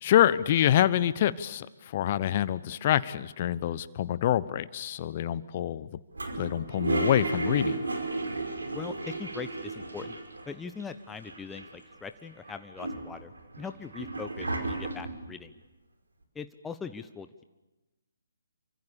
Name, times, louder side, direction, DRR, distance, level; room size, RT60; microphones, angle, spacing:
voice 1, 0.0-5.9 6.4-7.8, left 11 dB, 35° left, 16 dB, 1.0 m, -26 dB
Toilet flush, 6.1-10.5 10.8-10.9 11.1-11.9 12.4-15.3, right 2 dB, 75° right, 4.9 m, -33 dB
voice 2, 8.7-10.2 10.5-13.3 13.6-15.5 16.3-17.4, left 5 dB, 10° left, 9 dB, 0.8 m, -41 dB
28.0 x 25.0 x 7.0 m, 1.1 s
figure-of-eight pair, 140°, 0 cm